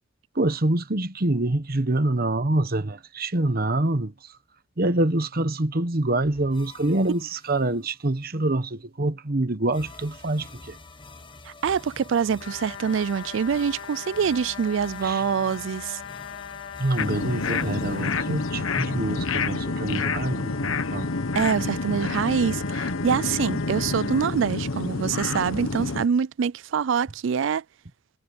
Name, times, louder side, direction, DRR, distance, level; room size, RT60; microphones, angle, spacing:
voice 1, 0.3-4.4 4.8-10.8 15.0-15.3 16.8-21.1, right 2 dB, 45° right, 1.1 m, -26 dB
sound 1, 6.2-8.1 9.7-19.5, left 3 dB, 25° left, 1.4 m, -47 dB
voice 2, 11.5-16.0 21.4-27.6, right 7 dB, 60° right, 0.4 m, -25 dB
sound 2, 12.4-24.3, left 7 dB, 65° left, 3.0 m, -39 dB
sound 3, 17.0-26.1, left 3 dB, 80° left, 1.2 m, -28 dB
head